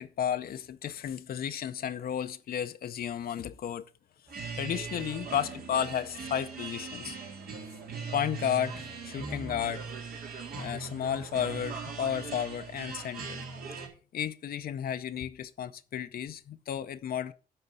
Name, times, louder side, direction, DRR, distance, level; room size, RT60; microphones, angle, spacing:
voice 1, 0.0-3.8 4.5-7.2 8.1-9.8 10.6-13.5 14.1-17.3, left 9 dB, 80° left, 0.6 m, -33 dB
sound 1, 4.3-13.9, right 5 dB, 80° right, 2.3 m, -40 dB
10.0 x 3.9 x 6.8 m
cardioid pair, 95°, 15 cm